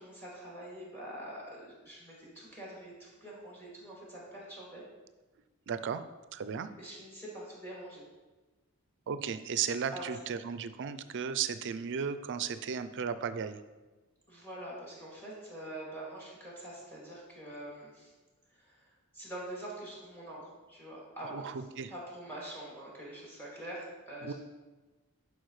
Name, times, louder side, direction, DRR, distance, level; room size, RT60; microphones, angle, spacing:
voice 1, 0.0-4.8 6.8-8.0 9.9-10.2 14.3-18.1 18.5-24.3, right 1 dB, 10° left, -5 dB, 2.4 m, -45 dB
voice 2, 5.7-6.0 6.3-6.7 9.1-13.6 21.3-21.9 24.2-24.3, right 7 dB, 55° right, 12 dB, 0.4 m, -35 dB
10.5 x 4.9 x 3.2 m, 1.2 s
head